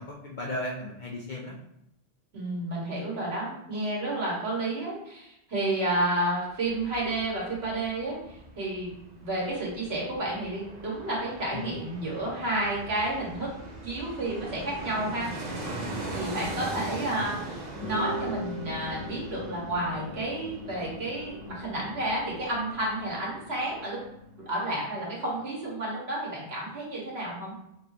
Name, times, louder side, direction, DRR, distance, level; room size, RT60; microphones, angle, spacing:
voice 1, 0.0-1.6 11.5-11.7 15.7-16.2, left 1 dB, 50° left, -2 dB, 0.6 m, -36 dB
voice 2, 2.3-8.9 9.2-13.5 13.8-15.3 16.1-24.0 24.4-27.5, right 1 dB, 60° right, -4 dB, 1.6 m, -31 dB
Fixed-wing aircraft airplane, 6.5-23.4 23.7-23.8, right 2 dB, 45° right, 0.7 m, -41 dB
sound 1, 17.8-25.5, left 1 dB, 75° left, 1.5 m, -41 dB
5.2 x 3.1 x 2.7 m, 0.81 s
omnidirectional pair, 1.2 m